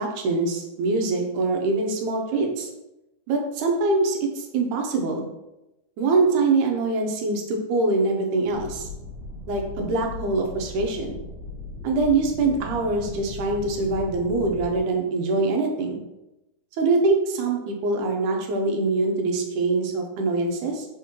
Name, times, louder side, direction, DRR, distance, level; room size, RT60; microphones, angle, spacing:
voice 1, 0.0-2.7 3.3-5.3 6.0-8.9 9.5-11.2 11.8-16.0 16.8-20.9, right 3 dB, 90° right, 2 dB, 2.2 m, -24 dB
sound 1, 8.5-14.8, left 3 dB, 70° right, 2.5 m, -37 dB
4.9 x 3.6 x 3.0 m, 0.96 s
omnidirectional pair, 3.5 m